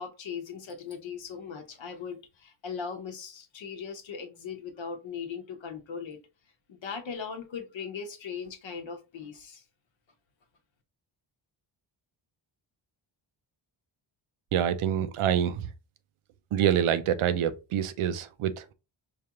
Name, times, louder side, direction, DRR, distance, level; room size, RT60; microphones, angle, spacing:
voice 1, 0.0-6.2 6.7-9.6, left 6 dB, 65° left, 0.9 m, -39 dB
voice 2, 14.5-15.7 16.5-18.7, right 9 dB, 80° right, 0.6 m, -26 dB
4.9 x 2.4 x 2.9 m
cardioid pair, 90°, 50 cm